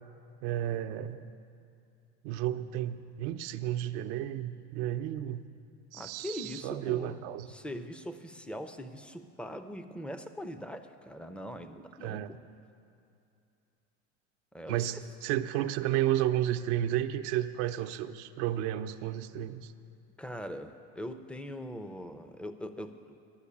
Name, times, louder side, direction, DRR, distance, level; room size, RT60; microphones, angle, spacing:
voice 1, 0.4-1.3 2.2-5.5 5.9-7.5 12.0-12.3 14.7-19.7, right 12 dB, 75° right, 9 dB, 0.6 m, -32 dB
voice 2, 5.9-7.2 7.5-12.4 14.5-14.9 20.2-23.2, equal, 5° left, 9 dB, 0.5 m, -41 dB
11.5 x 6.4 x 8.5 m, 2.6 s
supercardioid pair, 95°, 36 cm